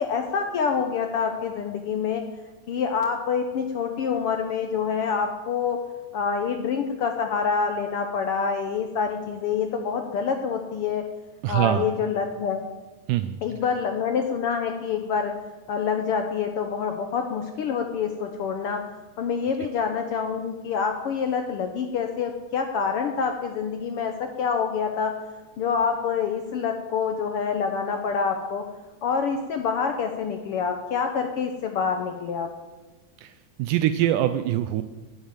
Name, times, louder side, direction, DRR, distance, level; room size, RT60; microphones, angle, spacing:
voice 1, 0.0-2.2 2.7-5.8 6.1-11.0 11.5-12.6 13.4-15.3 15.7-18.8 19.2-25.1 25.6-28.6 29.0-32.5, left 6 dB, 80° left, 5 dB, 1.3 m, -26 dB
voice 2, 11.4-11.9 13.1-13.4 33.2-33.3 33.6-34.8, right 12 dB, 80° right, 10 dB, 2.1 m, -23 dB
11.5 x 8.6 x 9.0 m, 1.2 s
omnidirectional pair, 3.7 m